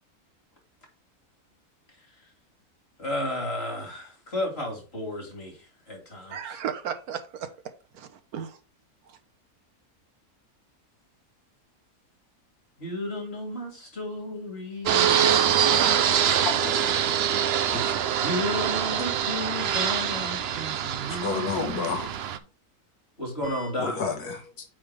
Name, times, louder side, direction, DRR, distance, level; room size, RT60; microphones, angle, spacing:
voice 1, 3.0-6.6 12.8-15.9 18.2-22.1 23.2-24.0, left 1 dB, 40° left, 3.1 m, -33 dB
voice 2, 6.3-8.6 9.1-9.2, right 8 dB, 80° right, 1.4 m, -35 dB
Fixed-wing aircraft airplane, 14.9-22.4, right 9 dB, 60° right, 0.7 m, -24 dB
voice 3, 15.0-15.3 16.4-16.7 17.7-18.2 21.1-22.1 23.4-24.7, left 4 dB, 85° left, 2.1 m, -32 dB
8.6 x 3.6 x 4.9 m
omnidirectional pair, 1.6 m